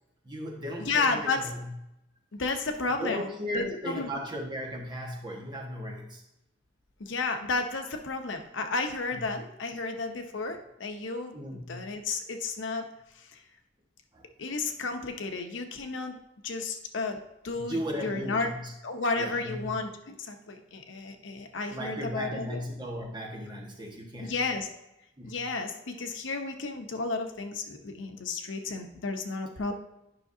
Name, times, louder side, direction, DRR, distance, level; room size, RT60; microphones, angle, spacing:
voice 1, 0.2-1.7 3.0-6.2 9.1-9.3 11.3-11.8 14.1-14.5 17.5-18.7 19.1-19.7 21.7-24.3 25.2-25.4, equal, 25° right, -1 dB, 1.4 m, -36 dB
voice 2, 0.8-1.4 2.3-4.1 7.0-12.8 14.4-16.2 16.4-18.5 18.8-22.6 24.2-24.7 25.2-29.7, left 3 dB, 75° left, 6 dB, 0.8 m, -32 dB
9.7 x 5.7 x 2.7 m, 0.85 s
head